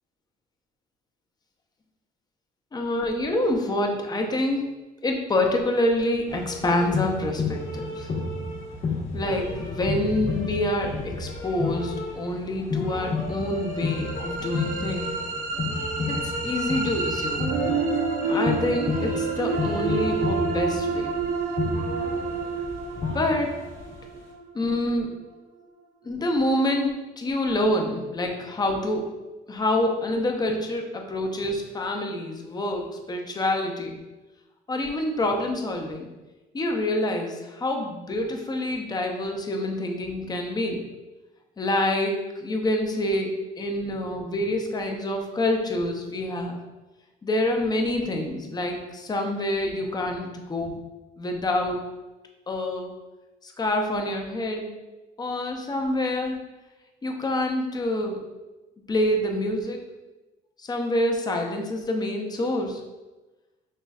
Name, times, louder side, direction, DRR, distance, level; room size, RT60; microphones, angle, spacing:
voice 1, 2.7-8.1 9.1-15.1 16.1-17.6 18.3-21.2 23.1-23.5 24.5-25.1 26.0-29.1 29.5-34.0 34.7-36.1 36.5-40.8 41.6-46.6 47.2-50.8 51.2-51.9 52.5-52.9 53.4-54.7 55.2-56.4 57.0-58.2 58.9-59.8 60.6-62.8, left 1 dB, 25° left, 2 dB, 0.6 m, -27 dB
sound 1, 6.3-24.0, left 3 dB, 45° left, 1.1 m, -31 dB
sound 2, 13.6-25.6, right 4 dB, 55° right, 0.7 m, -29 dB
5.4 x 3.1 x 2.3 m, 1.1 s
cardioid pair, 110°, 17 cm